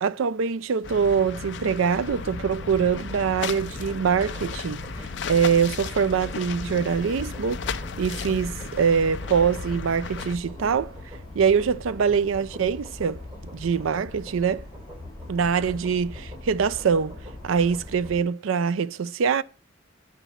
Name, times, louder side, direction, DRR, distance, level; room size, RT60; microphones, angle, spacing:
voice 1, 0.0-7.6 8.0-10.9 11.3-13.2 13.5-14.6 15.3-17.2 17.4-19.4, right 6 dB, 80° right, 0.4 m, -24 dB
sound 1, 0.8-10.4, left 5 dB, 60° left, 0.5 m, -35 dB
sound 2, 0.8-18.0, left 1 dB, 20° left, 0.9 m, -50 dB
sound 3, 2.1-18.2, left 1 dB, 30° right, 3.0 m, -41 dB
8.2 x 4.3 x 7.0 m
head